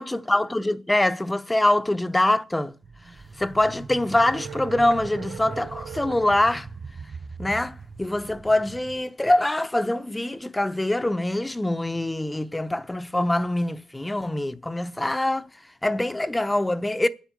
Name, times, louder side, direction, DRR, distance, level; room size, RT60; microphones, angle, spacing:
voice 1, 0.0-2.8 3.4-6.7 7.4-15.5 15.8-17.1, left 1 dB, 10° left, 0.7 m, -24 dB
sound 1, 2.8-9.0, right 4 dB, 35° right, 0.5 m, -40 dB
sound 2, 4.1-6.3, right 9 dB, 80° right, 2.1 m, -40 dB
9.8 x 8.3 x 6.2 m
cardioid pair, 90°, 0 cm